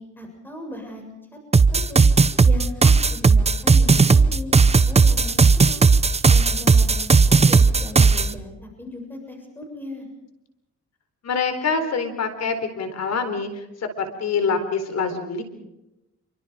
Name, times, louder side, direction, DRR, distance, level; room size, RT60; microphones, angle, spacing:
voice 1, 0.0-2.0 2.4-5.8 6.2-10.1, left 1 dB, 5° left, 2 dB, 7.3 m, -37 dB
sound 1, 1.5-8.3, right 4 dB, 20° right, 0.8 m, -15 dB
voice 2, 11.2-13.6 14.0-15.4, left 5 dB, 60° left, 8 dB, 4.2 m, -25 dB
27.5 x 24.5 x 5.1 m, 0.93 s
cardioid pair, 100°, 29 cm